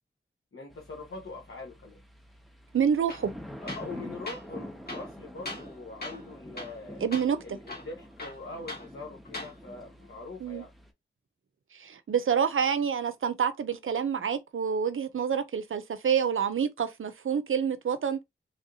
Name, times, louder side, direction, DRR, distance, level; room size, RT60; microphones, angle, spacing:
voice 1, 0.5-2.0 3.6-7.0 7.4-10.7, left 3 dB, 70° left, 1.0 m, -43 dB
sound 1, 0.7-10.9, equal, ahead, 0.8 m, -46 dB
voice 2, 2.7-3.3 7.0-7.6 10.4-10.6 11.7-18.2, right 7 dB, 70° right, 0.5 m, -28 dB
Tools, 3.1-3.3 3.7-3.9 4.3-4.4 4.9-5.7 6.0-6.3 6.6-6.8 7.1-7.3 7.7-8.9 9.3-9.5, left 2 dB, 50° left, 1.5 m, -40 dB
3.3 x 2.5 x 2.7 m
wide cardioid pair, 65°, 21 cm